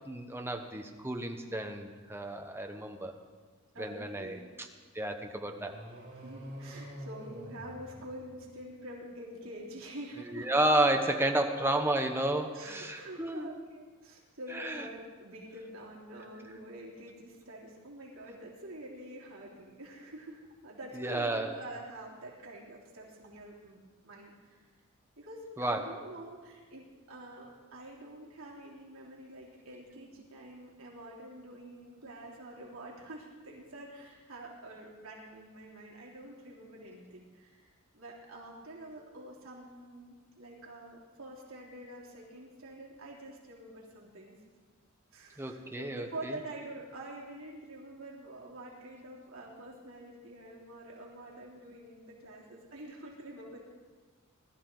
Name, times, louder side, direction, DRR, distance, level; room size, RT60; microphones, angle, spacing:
voice 1, 0.1-3.1 3.8-4.7 4.9-5.8 10.3-13.5 14.5-14.8 21.0-21.5 25.6-25.9 45.4-46.3, right 1 dB, 10° right, 4 dB, 1.0 m, -31 dB
voice 2, 3.7-4.5 6.1-10.5 11.4-11.9 12.5-24.6 25.2-37.7 37.9-44.4 45.1-53.6, right 1 dB, 75° right, -4 dB, 3.2 m, -47 dB
sound 1, 5.4-8.7, equal, 50° right, 4.2 m, -47 dB
20.0 x 12.5 x 3.9 m, 1.4 s
head